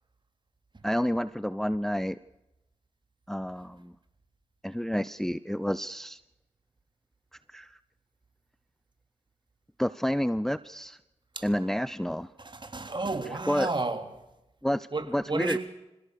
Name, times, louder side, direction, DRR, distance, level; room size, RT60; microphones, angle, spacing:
voice 1, 0.8-2.2 3.3-3.9 4.6-6.2 7.5-7.8 9.8-11.0 11.4-12.3 13.5-13.7 14.6-15.6, equal, 5° left, 0.7 m, -29 dB
voice 2, 12.4-14.0 14.9-15.6, right 3 dB, 35° right, 3.5 m, -31 dB
26.5 x 16.5 x 6.7 m
cardioid pair, 40°, 13 cm